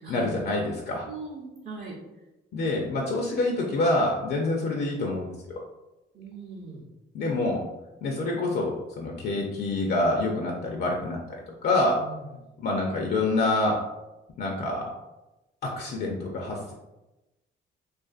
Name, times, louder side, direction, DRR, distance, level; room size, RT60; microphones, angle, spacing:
voice 1, 0.1-1.1 2.5-5.6 7.1-7.6 8.0-11.4 11.6-12.0 12.6-13.8 14.4-14.9 15.6-16.7, left 2 dB, 55° left, 0 dB, 0.4 m, -27 dB
voice 2, 1.1-2.0 6.1-6.9 11.9-12.3, right 4 dB, 45° right, -4 dB, 0.6 m, -40 dB
2.4 x 2.4 x 2.4 m, 1.0 s
cardioid pair, 90°, 20 cm